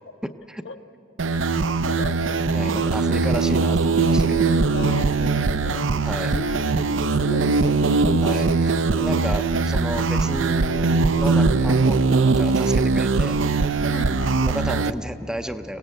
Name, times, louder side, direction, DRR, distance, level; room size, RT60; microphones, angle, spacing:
voice 1, 0.2-0.7 2.5-4.5 6.0-6.4 8.2-13.4 14.4-15.8, equal, 5° right, 7 dB, 0.5 m, -32 dB
sound 1, 1.2-14.9, right 3 dB, 75° right, 0.6 m, -21 dB
voice 2, 1.3-2.2 4.3-5.9 6.3-8.2 9.3-9.4 9.7-9.8 11.2-11.5 13.9-14.5, left 2 dB, 70° left, 6 dB, 1.2 m, -35 dB
25.5 x 17.0 x 8.9 m, 2.7 s
head